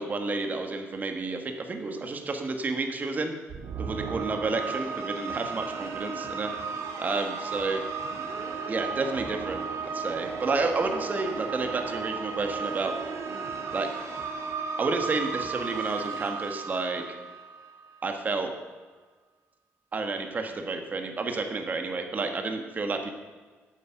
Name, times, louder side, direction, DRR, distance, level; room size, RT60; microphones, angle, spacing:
voice 1, 0.0-3.3 3.8-6.5 7.0-7.8 8.7-13.0 13.7-13.9 14.8-17.0 18.0-18.5 19.9-23.1, right 3 dB, 35° right, 5 dB, 1.5 m, -30 dB
sound 1, 3.5-17.9, right 5 dB, 80° right, 1.7 m, -34 dB
14.0 x 8.5 x 5.9 m, 1.4 s
cardioid pair, 125°, 5 cm